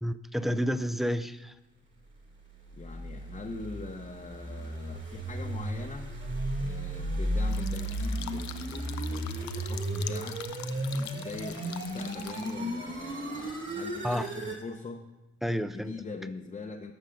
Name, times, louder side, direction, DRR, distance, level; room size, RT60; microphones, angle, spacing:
voice 1, 0.0-1.5 14.0-14.3 15.4-15.9, equal, ahead, 12 dB, 0.4 m, -30 dB
sound 1, 2.4-14.6, right 1 dB, 40° right, 2.4 m, -34 dB
voice 2, 2.8-6.1 6.6-10.5 10.9-15.1 15.6-16.9, left 3 dB, 25° left, 1 dB, 0.8 m, -42 dB
sound 2, 7.5-12.5, left 12 dB, 70° left, 0.6 m, -44 dB
13.5 x 5.4 x 5.1 m, 1.0 s
cardioid pair, 90°, 30 cm